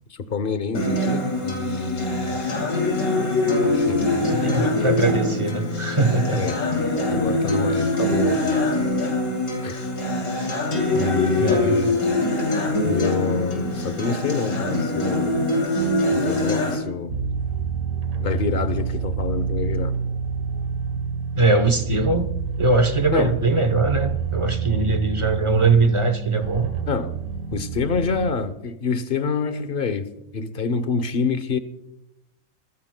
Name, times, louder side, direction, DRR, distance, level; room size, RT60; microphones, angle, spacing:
voice 1, 0.1-2.4 3.7-5.0 6.3-6.6 7.1-8.6 9.6-9.9 10.9-12.0 12.8-15.4 15.8-17.2 18.2-19.9 23.1-23.5 26.9-27.2 27.5-31.6, left 5 dB, 45° left, 0.9 m, -27 dB
Acoustic guitar, 0.7-16.8, left 1 dB, 80° left, 3.3 m, -23 dB
voice 2, 4.2-6.5 11.4-11.8 21.4-22.3 22.6-26.7, right 3 dB, 30° right, 0.7 m, -21 dB
sound 1, 17.1-28.3, right 6 dB, 75° right, 1.7 m, -28 dB
24.0 x 15.0 x 2.2 m
omnidirectional pair, 1.5 m